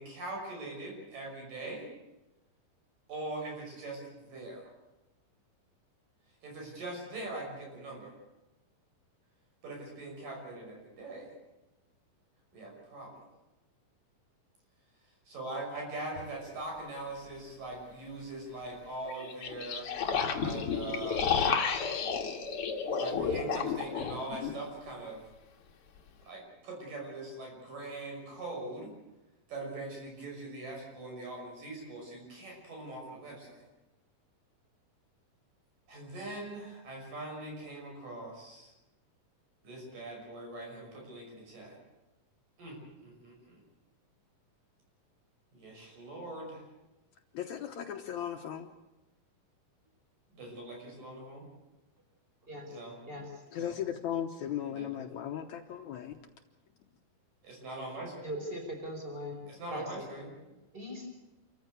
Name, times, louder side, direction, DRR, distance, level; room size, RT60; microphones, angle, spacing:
voice 1, 0.0-1.8 3.1-4.7 6.4-8.1 9.6-11.3 12.5-13.2 15.3-19.9 20.4-21.5 23.0-25.3 26.2-28.9 29.5-33.6 35.9-38.7 39.6-41.8 42.6-42.8 43.0-43.6 45.5-46.6 50.3-51.5 52.7-53.0 53.5-53.8 54.7-55.1 57.4-58.1 59.5-60.3, right 2 dB, 70° right, -1 dB, 7.6 m, -42 dB
sound 1, 16.1-16.2 19.0-24.6, left 6 dB, 50° left, 2.1 m, -32 dB
voice 2, 47.4-48.7 53.5-56.1, left 10 dB, 70° left, 5 dB, 2.1 m, -36 dB
voice 3, 58.2-59.4 59.7-59.8 60.7-61.1, equal, 15° right, 2 dB, 4.8 m, -39 dB
27.5 x 14.5 x 8.3 m, 1.0 s
omnidirectional pair, 3.9 m